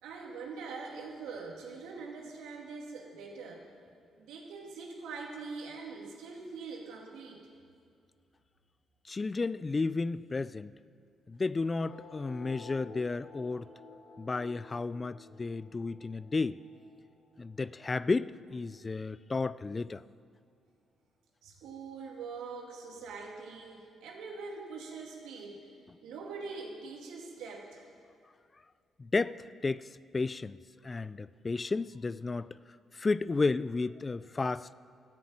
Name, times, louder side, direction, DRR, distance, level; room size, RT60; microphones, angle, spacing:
voice 1, 0.0-3.7 4.2-7.4 21.4-25.7 26.0-27.9 31.1-31.2, right 4 dB, 90° right, 2.6 m, -43 dB
voice 2, 9.1-10.7 11.3-13.7 14.2-16.6 17.4-20.0 29.0-29.9 30.1-30.6 30.8-32.6 32.9-34.7, left 3 dB, 25° left, 0.3 m, -32 dB
sound 1, 11.8-18.8, left 2 dB, 65° left, 4.8 m, -53 dB
13.5 x 9.6 x 8.6 m
cardioid pair, 90°, 0 cm